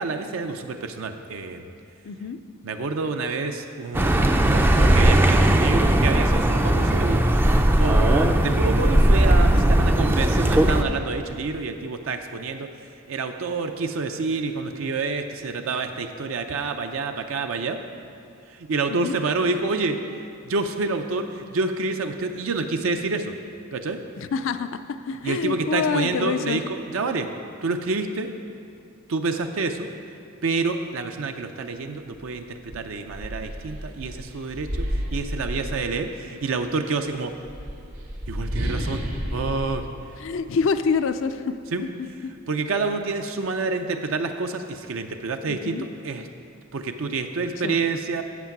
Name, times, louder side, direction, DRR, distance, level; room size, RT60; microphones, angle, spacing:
voice 1, 0.0-1.7 2.6-7.3 7.8-12.7 13.1-17.8 18.5-20.0 20.5-23.4 23.7-24.0 25.2-27.3 27.6-28.3 29.1-29.9 30.4-37.3 38.3-39.0 39.3-39.9 41.7-41.8 42.5-46.3 46.7-48.2, right 3 dB, 65° right, 6 dB, 0.5 m, -28 dB
voice 2, 2.0-2.4 18.9-19.2 24.2-26.6 40.2-41.5 42.0-42.3 45.5-45.9 47.6-47.8, left 5 dB, 65° left, 11 dB, 0.4 m, -26 dB
Accelerating revving vroom, 3.9-10.8, right 1 dB, 10° right, 0.3 m, -18 dB
sound 1, 32.1-32.3 32.7-36.3 37.3-40.9, equal, 85° right, 1.9 m, -31 dB
8.1 x 7.3 x 5.9 m, 2.4 s
head